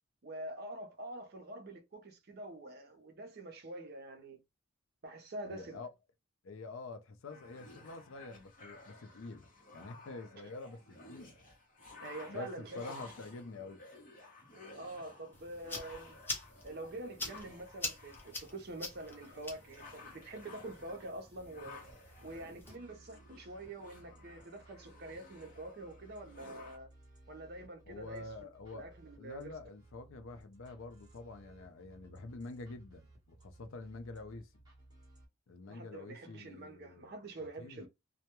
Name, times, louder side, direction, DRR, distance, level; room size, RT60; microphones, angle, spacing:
voice 1, 0.2-4.4 5.0-5.8 10.1-10.2 12.0-13.0 14.8-16.2 16.6-21.8 22.2-26.9 27.3-28.2 28.7-29.5 35.7-37.9, right 2 dB, 45° right, 0.6 m, -46 dB
voice 2, 5.5-5.9 6.4-11.5 12.3-13.8 27.9-28.9 29.2-34.5 35.5-37.1 37.6-37.9, left 3 dB, 70° left, 0.5 m, -47 dB
sound 1, 7.3-26.8, left 3 dB, 40° left, 0.7 m, -55 dB
sound 2, 15.3-22.7, left 2 dB, 10° left, 0.4 m, -45 dB
sound 3, 21.3-35.3, right 2 dB, 20° right, 0.9 m, -60 dB
2.2 x 2.1 x 2.9 m
head